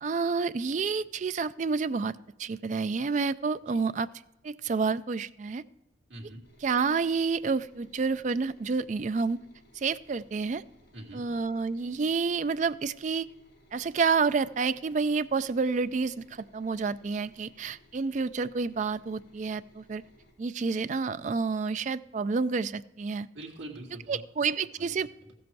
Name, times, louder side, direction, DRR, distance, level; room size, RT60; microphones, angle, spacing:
voice 1, 0.0-4.1 4.4-5.6 6.6-9.4 9.7-10.6 11.1-13.3 13.7-20.0 20.4-23.3 24.1-25.1, right 4 dB, 40° right, 14 dB, 0.3 m, -29 dB
voice 2, 6.1-6.4 10.9-11.3 23.3-24.2 24.8-24.9 25.2-25.3, right 1 dB, 75° right, -2 dB, 2.2 m, -44 dB
sound 1, 6.4-20.3, left 1 dB, 65° left, 4.9 m, -61 dB
14.5 x 7.7 x 4.6 m, 0.91 s
head